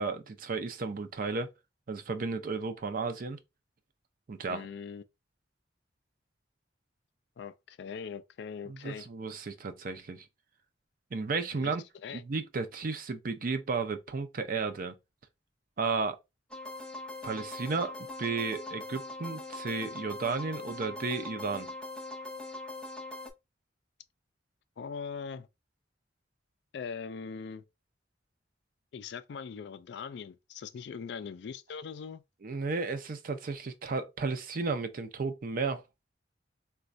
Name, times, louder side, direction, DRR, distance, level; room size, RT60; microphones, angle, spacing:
voice 1, 0.0-1.5 1.9-3.4 4.3-4.7 8.7-10.2 11.1-11.8 12.1-15.0 15.8-16.2 17.2-17.9 18.2-21.7 32.4-35.8, right 4 dB, 50° right, 0.5 m, -33 dB
voice 2, 4.5-5.0 7.4-9.1 11.5-11.8 12.0-12.2 24.8-25.5 26.7-27.6 28.9-32.2, left 6 dB, 70° left, 0.3 m, -41 dB
sound 1, 16.5-23.3, left 2 dB, 5° left, 0.4 m, -41 dB
4.1 x 2.2 x 2.4 m
head